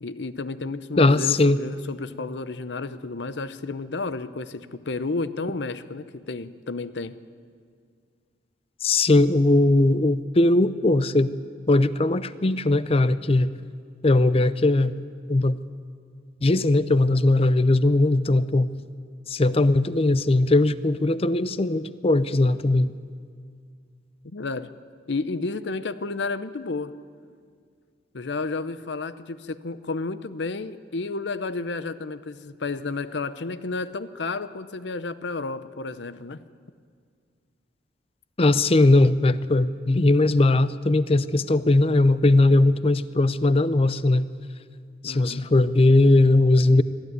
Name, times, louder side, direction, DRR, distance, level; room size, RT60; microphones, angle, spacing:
voice 1, 0.0-7.1 24.2-24.7 25.1-26.9 28.1-36.4 45.0-45.5, left 3 dB, 75° left, 14 dB, 0.7 m, -31 dB
voice 2, 1.0-1.6 8.8-11.3 11.7-13.5 14.0-15.0 15.3-15.6 16.4-18.7 19.3-22.9 38.4-44.3 45.0-46.8, left 2 dB, 35° left, 15 dB, 0.6 m, -19 dB
22.0 x 14.0 x 9.4 m, 2.1 s
head